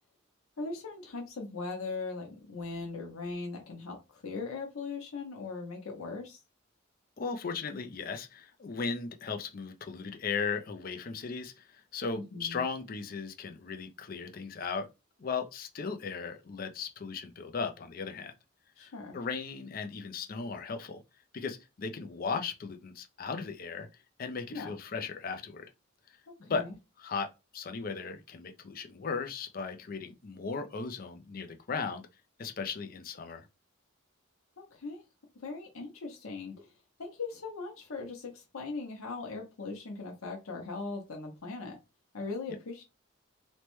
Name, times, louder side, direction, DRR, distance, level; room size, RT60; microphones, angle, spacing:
voice 1, 0.6-6.4 12.1-12.6 18.8-19.2 24.5-24.8 26.3-26.8 34.6-35.0 35.4-36.7 37.0-41.8 42.1-42.9, left 3 dB, 85° left, 0.8 m, -39 dB
voice 2, 7.2-14.9 15.2-18.3 18.8-21.0 21.3-23.9 24.2-25.6 26.4-26.6 27.0-32.1 32.4-33.5, left 5 dB, 45° left, 0.4 m, -37 dB
3.1 x 2.1 x 3.0 m
head